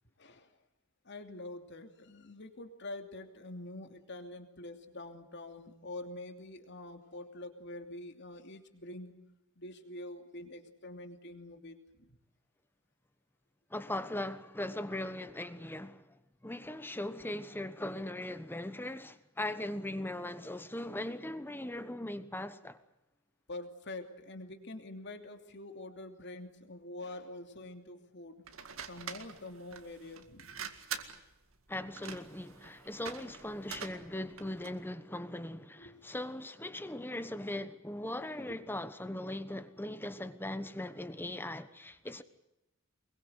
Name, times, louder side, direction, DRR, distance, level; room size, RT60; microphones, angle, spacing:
voice 1, 0.2-0.6 1.0-9.1 9.6-12.2 23.5-28.4 28.9-30.7 35.8-36.0 38.5-38.6, left 2 dB, 55° left, 2.8 m, -46 dB
voice 2, 13.7-16.2 16.4-22.8 31.7-42.2, left 1 dB, 10° left, 1.2 m, -39 dB
sound 1, 28.4-34.8, right 7 dB, 70° right, 2.0 m, -45 dB
24.0 x 22.0 x 8.1 m
head